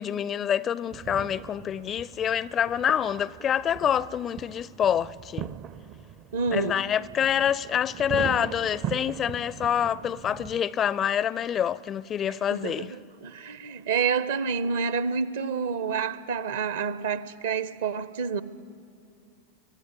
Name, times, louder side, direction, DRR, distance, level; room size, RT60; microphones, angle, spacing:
voice 1, 0.0-5.5 6.5-12.9, left 9 dB, 25° left, 0.4 m, -27 dB
sound 1, 0.9-10.6, right 9 dB, 35° right, 0.5 m, -40 dB
voice 2, 6.3-6.8 12.5-18.4, right 6 dB, 60° right, 0.8 m, -28 dB
24.5 x 13.5 x 9.6 m
figure-of-eight pair, 90°, 0 cm